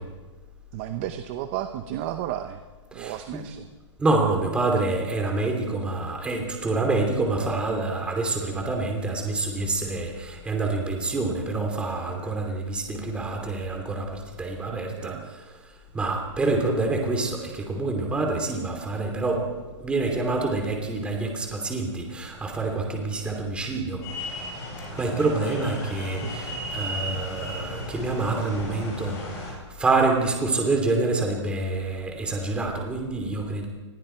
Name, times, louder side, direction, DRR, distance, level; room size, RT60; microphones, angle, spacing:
voice 1, 0.7-2.6 2.9-3.7 14.7-15.3 16.4-16.7 26.0-26.7, right 12 dB, 25° right, 9 dB, 0.8 m, -34 dB
voice 2, 4.0-15.4 15.9-19.4 19.8-24.0 24.9-33.7, right 3 dB, 5° right, 2 dB, 2.8 m, -27 dB
sound 1, 24.0-29.5, equal, 20° left, 7.7 m, -35 dB
27.5 x 21.0 x 4.5 m, 1.3 s
hypercardioid pair, 170°, 15 cm